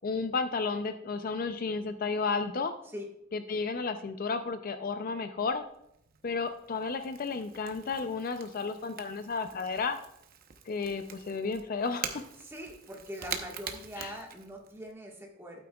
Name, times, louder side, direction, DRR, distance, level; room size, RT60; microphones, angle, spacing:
voice 1, 0.0-2.7 3.3-5.6 6.2-10.0 10.7-12.2 14.0-14.2, left 4 dB, 45° left, 9 dB, 0.5 m, -32 dB
Crackle / Crack, 5.4-14.9, right 7 dB, 50° right, 0.8 m, -45 dB
voice 2, 12.4-15.6, equal, 15° right, 0 dB, 1.5 m, -42 dB
12.0 x 8.7 x 2.3 m, 0.79 s
head